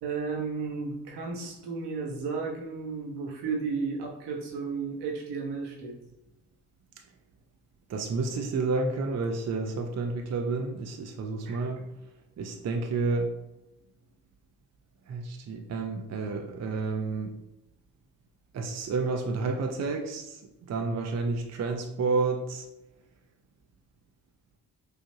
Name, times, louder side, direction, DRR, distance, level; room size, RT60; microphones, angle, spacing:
voice 1, 0.0-5.9 11.4-11.8, right 4 dB, 80° right, -1 dB, 1.0 m, -33 dB
voice 2, 7.9-11.8 12.4-13.3 15.1-17.3 18.5-22.6, right 3 dB, 40° right, 3 dB, 0.6 m, -30 dB
4.8 x 2.4 x 2.8 m, 0.93 s
hypercardioid pair, 45°, 40 cm